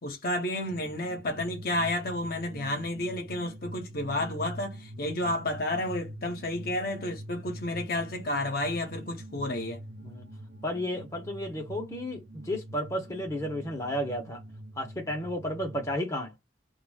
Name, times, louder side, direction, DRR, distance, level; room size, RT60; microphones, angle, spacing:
voice 1, 0.0-9.8, left 1 dB, 55° left, 0.8 m, -31 dB
sound 1, 0.7-16.0, right 1 dB, 55° right, 0.5 m, -44 dB
voice 2, 10.6-14.4 14.8-16.3, equal, 15° left, 0.7 m, -33 dB
2.3 x 2.0 x 3.3 m
head